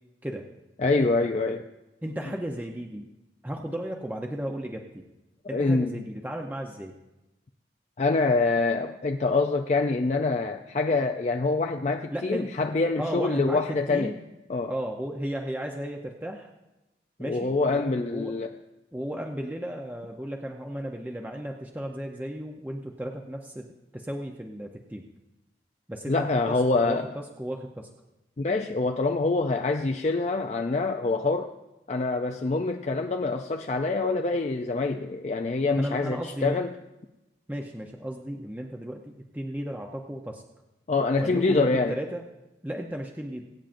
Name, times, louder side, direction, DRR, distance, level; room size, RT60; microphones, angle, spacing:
voice 1, 0.8-1.7 5.5-6.0 8.0-14.1 14.5-14.7 17.2-18.5 26.1-27.1 28.4-31.5 31.9-36.7 40.9-42.0, left 3 dB, 40° left, 4 dB, 0.4 m, -25 dB
voice 2, 2.0-3.1 3.4-5.0 5.5-6.9 12.1-12.5 13.0-13.6 13.9-14.2 14.7-16.5 17.2-18.4 18.9-23.7 23.9-25.0 25.9-27.1 27.4-27.9 35.8-36.6 37.5-40.4 41.2-42.2 42.6-43.4, equal, 10° right, 1 dB, 0.6 m, -35 dB
23.0 x 8.9 x 2.6 m, 0.98 s
head